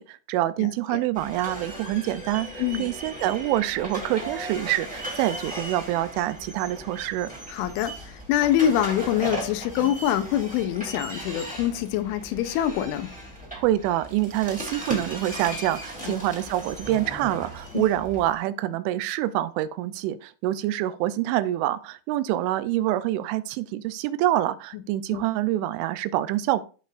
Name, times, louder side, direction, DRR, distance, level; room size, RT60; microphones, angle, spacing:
voice 1, 0.0-7.3 13.6-26.6, right 14 dB, 85° right, 3.0 m, -26 dB
voice 2, 0.6-1.0 2.6-2.8 7.5-13.1 16.0-16.2 17.7-17.9 25.1-25.2, left 11 dB, 85° left, 3.2 m, -25 dB
sound 1, 1.1-18.4, right 1 dB, 5° right, 1.2 m, -37 dB
13.5 x 5.6 x 2.5 m
omnidirectional pair, 5.5 m